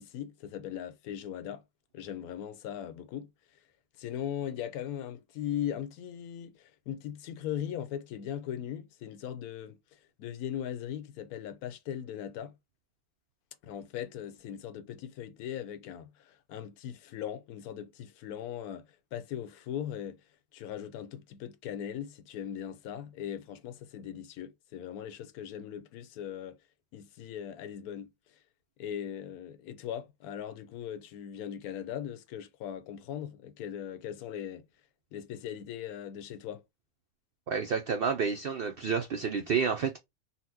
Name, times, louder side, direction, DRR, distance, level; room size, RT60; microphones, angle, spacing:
voice 1, 0.0-1.6 1.9-3.3 4.0-12.5 13.6-20.2 20.5-26.6 26.9-28.1 28.8-34.7 35.1-36.6, left 10 dB, 80° left, 1.1 m, -39 dB
voice 2, 37.5-40.0, right 6 dB, 85° right, 0.5 m, -29 dB
4.1 x 2.1 x 2.6 m
omnidirectional pair, 1.6 m